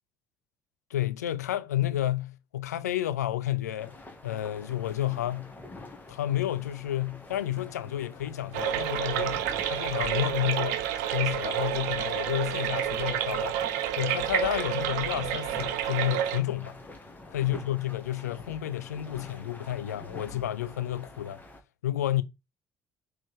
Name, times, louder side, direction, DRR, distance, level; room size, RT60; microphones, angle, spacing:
voice 1, 0.9-4.0 4.2-5.5 6.1-10.8 11.1-13.6 13.9-16.8 17.3-21.4 21.8-22.2, left 13 dB, 85° left, 0.5 m, -30 dB
sound 1, 3.8-21.6, left 2 dB, 20° left, 2.6 m, -47 dB
sound 2, 8.5-16.4, right 10 dB, 75° right, 0.8 m, -29 dB
6.4 x 4.5 x 4.7 m
hypercardioid pair, 50°, 9 cm